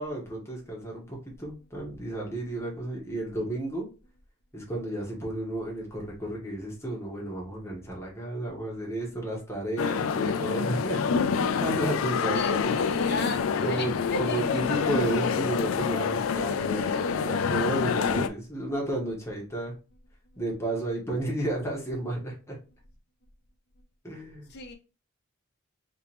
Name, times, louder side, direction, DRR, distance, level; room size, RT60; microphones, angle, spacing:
voice 1, 0.0-3.9 4.5-11.0 11.3-13.1 13.6-13.9 14.2-19.7 20.4-22.6 24.0-24.5, right 1 dB, 15° left, 1.3 m, -32 dB
sound 1, 9.8-18.3, left 6 dB, 70° left, 0.4 m, -27 dB
voice 2, 12.3-15.2 24.5-24.7, left 3 dB, 55° left, 0.8 m, -36 dB
3.3 x 2.9 x 3.3 m
head